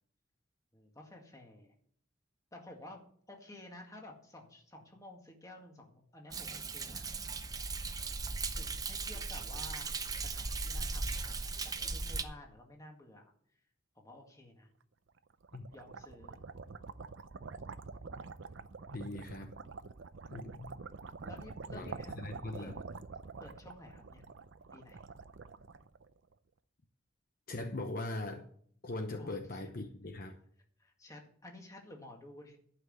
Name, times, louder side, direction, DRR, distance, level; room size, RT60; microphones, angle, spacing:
voice 1, 0.7-1.7 2.5-7.1 8.6-13.3 14.0-14.7 15.7-16.4 21.2-22.8 23.4-24.2 24.7-25.0 29.2-29.7 30.8-32.6, left 1 dB, 15° left, 1 dB, 2.0 m, -52 dB
Thunder, 6.3-12.2, right 4 dB, 20° right, 0.6 m, -38 dB
sound 1, 15.2-26.3, right 4 dB, 70° right, 0.6 m, -47 dB
voice 2, 18.9-19.6 20.3-20.8 21.7-22.8 27.5-28.5 28.8-30.4, left 2 dB, 45° left, 5 dB, 0.9 m, -40 dB
11.5 x 5.9 x 7.9 m, 0.62 s
head